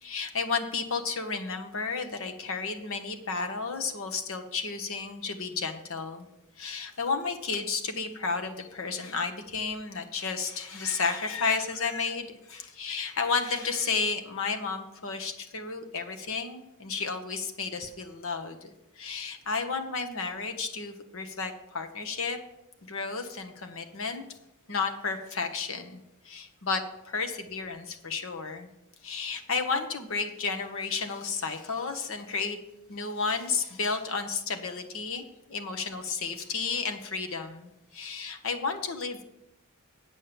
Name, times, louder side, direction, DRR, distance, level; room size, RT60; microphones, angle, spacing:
voice 1, 0.0-6.3 6.6-18.7 19.0-22.4 22.8-24.2 24.7-28.7 29.0-32.6 32.9-35.2 35.5-39.2, left 4 dB, 65° left, 6 dB, 1.3 m, -32 dB
8.4 x 7.4 x 7.0 m, 0.87 s
head